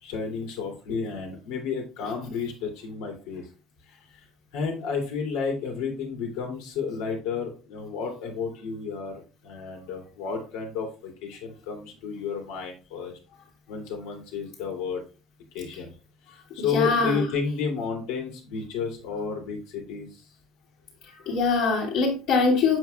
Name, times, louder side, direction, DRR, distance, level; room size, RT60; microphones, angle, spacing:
voice 1, 0.0-3.4 4.5-13.1 13.7-15.0 15.5-15.9 16.3-20.2, left 5 dB, 85° left, 2 dB, 2.4 m, -31 dB
voice 2, 16.6-17.3 21.3-22.8, left 4 dB, 60° left, -5 dB, 2.0 m, -23 dB
7.7 x 6.1 x 2.2 m, 0.34 s
cardioid pair, 170°, 0 cm